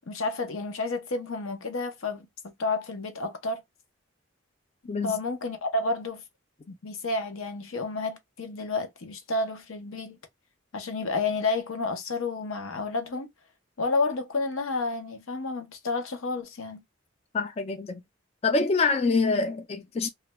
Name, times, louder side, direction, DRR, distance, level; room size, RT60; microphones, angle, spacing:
voice 1, 0.1-3.6 5.0-6.2 6.7-10.2 10.7-13.3 13.8-16.8, left 3 dB, 90° left, 0.7 m, -30 dB
voice 2, 17.3-18.0 18.4-20.1, left 4 dB, 30° left, 0.3 m, -25 dB
2.4 x 2.2 x 3.0 m
head